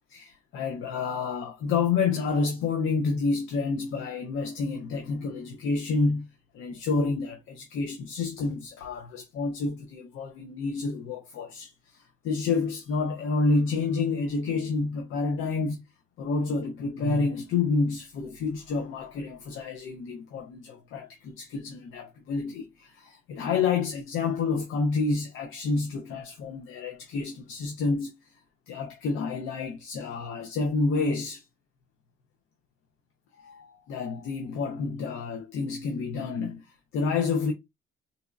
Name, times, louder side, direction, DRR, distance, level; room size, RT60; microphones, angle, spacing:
voice 1, 0.1-6.3 6.5-15.8 16.2-28.1 28.7-31.4 33.4-37.5, left 4 dB, 85° left, 0.6 m, -29 dB
4.1 x 2.6 x 2.3 m
cardioid pair, 90°, 20 cm